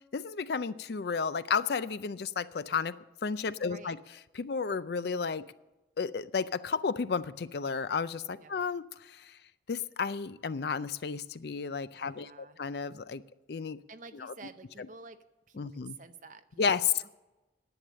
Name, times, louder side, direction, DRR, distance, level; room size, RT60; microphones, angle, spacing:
voice 1, 0.1-2.9 3.2-4.0 4.3-5.4 6.0-9.4 9.7-13.2 13.5-13.8 14.1-14.3 14.8-14.9 15.6-16.0 16.6-17.0, left 5 dB, 60° left, 15 dB, 0.4 m, -32 dB
voice 2, 3.6-4.0 8.4-8.6 11.9-12.6 13.9-15.2 15.5-16.6, right 4 dB, 45° right, 9 dB, 0.7 m, -50 dB
11.0 x 8.5 x 7.4 m, 1.0 s
head